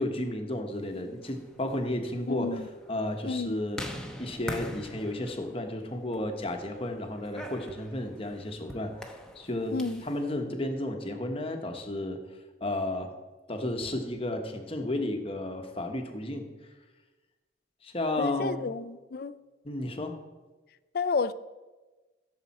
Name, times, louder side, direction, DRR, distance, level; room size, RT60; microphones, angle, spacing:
voice 1, 0.0-2.6 2.9-3.8 4.2-8.9 9.3-12.2 12.6-13.1 13.5-16.5 17.8-18.6 19.6-20.1, left 1 dB, 30° left, 1.1 m, -32 dB
sound 1, 1.1-10.2, equal, 5° left, 0.9 m, -44 dB
voice 2, 2.3-2.7 3.2-3.6 9.7-10.0 18.2-19.4 20.9-21.3, left 4 dB, 55° left, 0.4 m, -31 dB
15.5 x 6.8 x 4.2 m
head